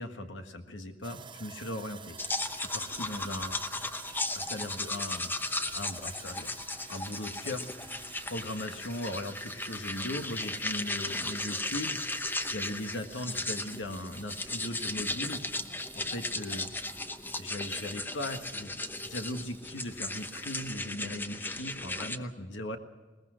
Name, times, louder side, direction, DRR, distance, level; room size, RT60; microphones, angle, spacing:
voice 1, 0.0-2.2 2.5-3.9 4.3-5.3 5.7-7.9 8.3-12.2 12.5-15.7 15.9-17.0 17.4-18.7 19.0-22.8, left 1 dB, 75° left, 6 dB, 1.6 m, -39 dB
Sawing, 1.0-20.9, right 6 dB, 25° right, 0.6 m, -52 dB
sound 1, 2.2-22.2, left 2 dB, 10° left, 0.8 m, -36 dB
21.0 x 20.0 x 6.3 m, 1.3 s
head